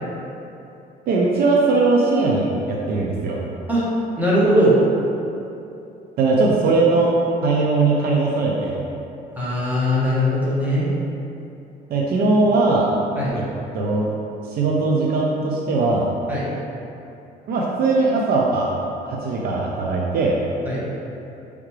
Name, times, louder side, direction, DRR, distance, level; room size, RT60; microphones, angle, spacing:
voice 1, 1.1-3.4 6.2-7.2 7.4-8.8 11.9-12.9 13.3-13.4 13.7-14.1 14.5-16.1 17.5-18.7 19.1-20.4, right 3 dB, 65° right, -2 dB, 0.6 m, -19 dB
voice 2, 4.2-4.7 9.4-10.9 13.2-13.3 16.3-16.5 20.6-20.8, equal, 10° right, -8 dB, 1.3 m, -20 dB
4.7 x 3.4 x 3.2 m, 2.8 s
cardioid pair, 110°, 17 cm